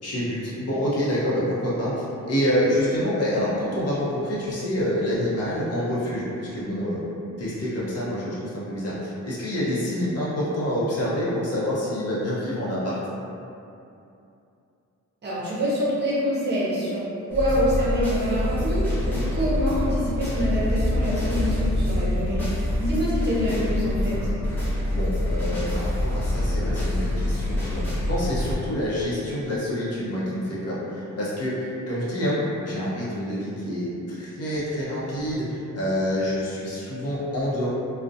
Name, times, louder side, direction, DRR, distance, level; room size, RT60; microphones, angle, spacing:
voice 1, 0.0-7.0 7.4-13.0 24.9-37.7, equal, 55° left, -8 dB, 0.7 m, -27 dB
voice 2, 15.2-17.0 17.3-24.2, equal, 35° right, -8 dB, 0.6 m, -26 dB
sound 1, 17.3-28.5, left 1 dB, 5° left, 0.6 m, -25 dB
2.4 x 2.1 x 2.6 m, 2.7 s
wide cardioid pair, 150°, 30 cm